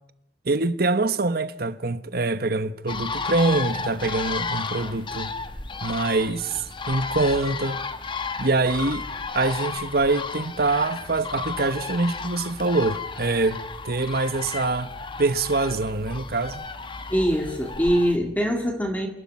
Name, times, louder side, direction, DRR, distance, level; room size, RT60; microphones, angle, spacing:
voice 1, 0.4-5.3 5.8-7.8 8.4-9.0 9.3-14.9 15.2-16.7, right 3 dB, 55° right, 1.2 m, -24 dB
sound 1, 2.9-18.2, left 4 dB, 25° left, 1.2 m, -33 dB
voice 2, 17.1-19.1, equal, 10° left, 2.3 m, -23 dB
27.5 x 12.0 x 9.8 m
head